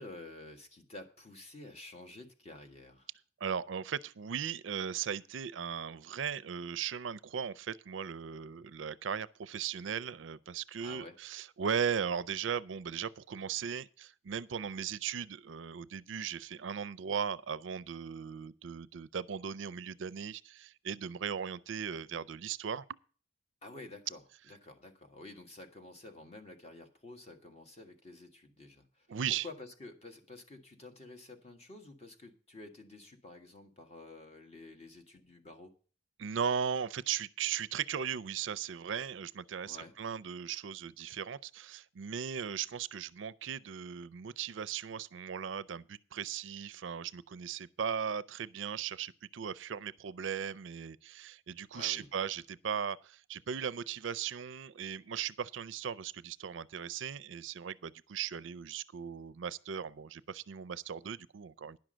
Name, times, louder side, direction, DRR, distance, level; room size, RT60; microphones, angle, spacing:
voice 1, 0.0-3.1 10.8-11.1 23.6-35.7 39.6-39.9 51.7-52.1, left 2 dB, 35° left, 1.6 m, -50 dB
voice 2, 3.4-22.8 29.1-29.5 36.2-61.8, right 7 dB, 75° right, 0.4 m, -37 dB
10.5 x 6.2 x 7.6 m
head